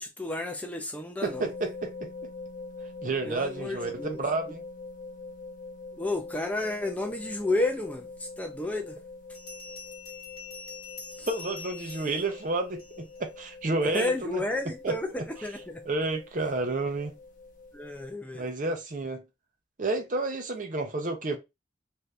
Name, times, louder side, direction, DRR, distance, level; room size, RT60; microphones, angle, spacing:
voice 1, 0.0-1.5 3.2-4.2 6.0-9.0 11.2-11.3 13.8-15.8 17.7-18.5, left 2 dB, 10° left, 0.4 m, -31 dB
sound 1, 1.2-18.1, left 3 dB, 45° left, 0.6 m, -44 dB
voice 2, 1.2-2.1 3.0-4.6 11.3-14.4 14.8-15.5 15.9-17.1 18.3-19.2 19.8-21.4, right 2 dB, 45° right, 0.7 m, -30 dB
Bell, 9.3-13.2, left 5 dB, 30° left, 1.1 m, -45 dB
2.6 x 2.5 x 3.2 m
head